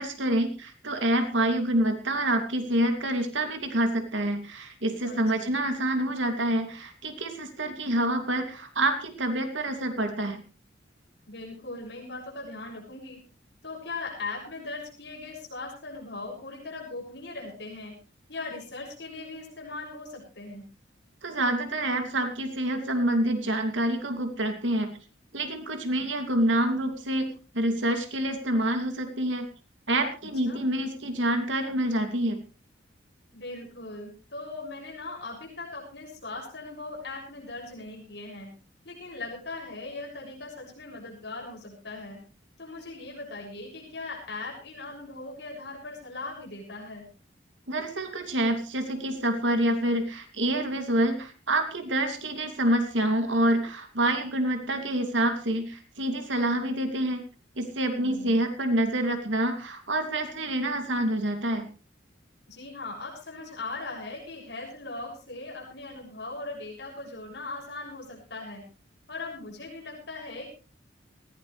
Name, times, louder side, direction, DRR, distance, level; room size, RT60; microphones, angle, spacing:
voice 1, 0.0-10.4 21.2-24.9 25.3-29.5 29.9-32.4 47.7-57.2 57.6-61.7, right 1 dB, 90° right, 6 dB, 2.6 m, -27 dB
voice 2, 5.0-5.5 11.3-13.2 13.6-17.9 18.3-20.7 30.4-30.6 33.3-38.5 38.8-42.2 42.6-47.1 57.9-58.4 62.5-68.6 69.1-70.5, left 3 dB, 65° left, -1 dB, 6.6 m, -39 dB
19.5 x 16.0 x 3.3 m, 0.34 s
head